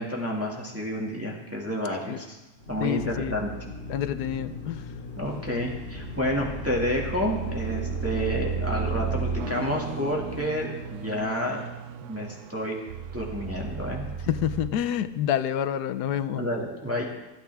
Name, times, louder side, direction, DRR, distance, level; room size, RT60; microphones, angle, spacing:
voice 1, 0.0-2.4 2.7-3.5 5.2-11.6 12.1-12.8 13.1-14.1 16.3-17.0, equal, 10° right, -2 dB, 1.9 m, -30 dB
Drill, 2.6-11.2, left 1 dB, 45° left, 4.2 m, -39 dB
voice 2, 2.8-3.3 3.9-4.8 14.3-16.5, left 10 dB, 75° left, 12 dB, 1.2 m, -28 dB
sound 1, 5.3-14.7, right 6 dB, 75° right, 1.2 m, -34 dB
25.5 x 9.3 x 3.5 m, 1.1 s
omnidirectional pair, 1.8 m